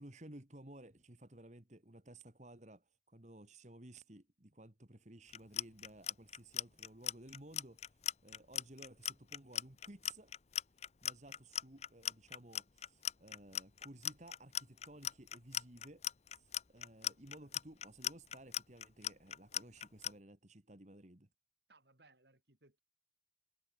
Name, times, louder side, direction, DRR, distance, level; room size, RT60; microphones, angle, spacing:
voice 1, 0.0-10.4 10.8-16.1 16.3-21.3, right 1 dB, 40° right, 2.1 m, -56 dB
Clock, 5.3-20.1, left 11 dB, 35° left, 0.7 m, -39 dB
voice 2, 17.0-17.5 21.7-22.8, right 2 dB, 65° right, 4.2 m, -68 dB
head